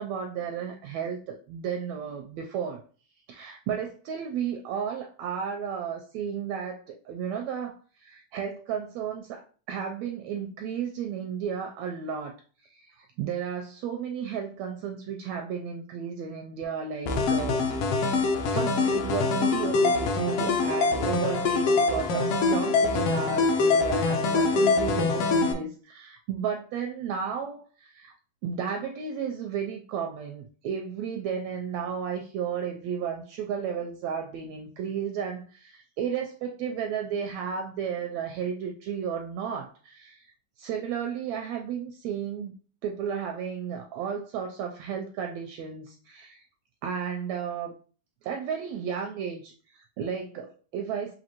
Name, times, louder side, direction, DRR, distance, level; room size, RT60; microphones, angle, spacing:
voice 1, 0.0-2.8 3.3-9.4 9.7-12.4 12.6-28.1 28.4-42.5 42.8-46.4 46.8-47.7 48.2-51.1, right 7 dB, 80° right, 3 dB, 1.5 m, -33 dB
sound 1, 17.1-25.5, left 3 dB, 75° left, 1.4 m, -24 dB
6.1 x 2.6 x 2.9 m, 0.40 s
omnidirectional pair, 3.5 m